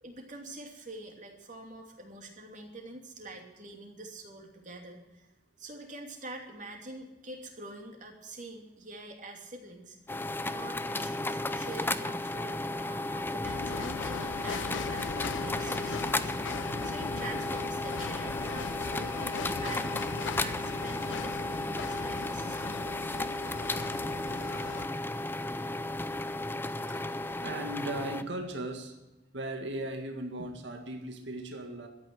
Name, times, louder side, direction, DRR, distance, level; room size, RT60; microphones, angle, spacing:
voice 1, 0.0-5.3 5.6-10.2 10.5-22.8, right 2 dB, 40° right, 2 dB, 2.8 m, -46 dB
sound 1, 10.1-28.2, left 2 dB, 10° left, 0.5 m, -34 dB
sound 2, 13.4-24.9, left 6 dB, 85° left, 0.5 m, -39 dB
voice 2, 27.4-28.9 29.3-31.9, right 1 dB, 75° right, 4 dB, 2.0 m, -37 dB
13.5 x 9.3 x 7.8 m, 1.0 s
head